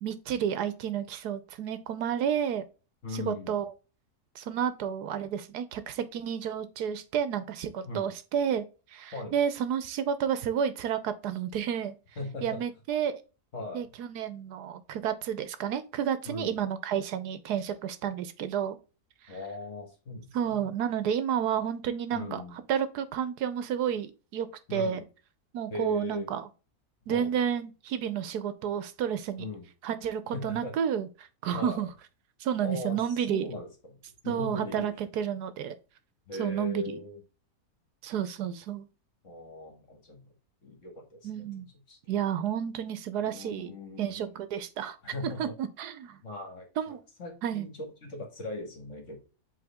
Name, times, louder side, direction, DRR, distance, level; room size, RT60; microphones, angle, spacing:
voice 1, 0.0-2.6 3.1-3.7 4.3-11.9 12.4-13.2 13.7-18.8 19.2-19.3 20.3-22.4 22.7-25.0 25.5-26.4 27.1-29.4 29.8-31.9 32.4-33.5 34.2-35.8 36.4-37.0 38.0-38.9 41.2-41.7 42.1-45.0 45.2-46.2 46.8-47.0 47.4-47.7, right 8 dB, 80° right, 1.3 m, -31 dB
voice 2, 3.0-3.6 7.9-8.1 9.1-9.4 12.2-12.6 13.5-13.8 16.3-16.6 19.3-20.7 22.1-22.6 24.7-25.0 25.7-26.3 27.1-27.3 29.4-29.7 30.3-30.7 31.5-31.9 32.6-34.9 36.3-37.2 39.2-40.3 40.6-42.0 43.2-44.3 45.0-45.5 46.2-49.2, left 2 dB, 50° left, 2.1 m, -39 dB
7.8 x 3.6 x 3.5 m
omnidirectional pair, 1.7 m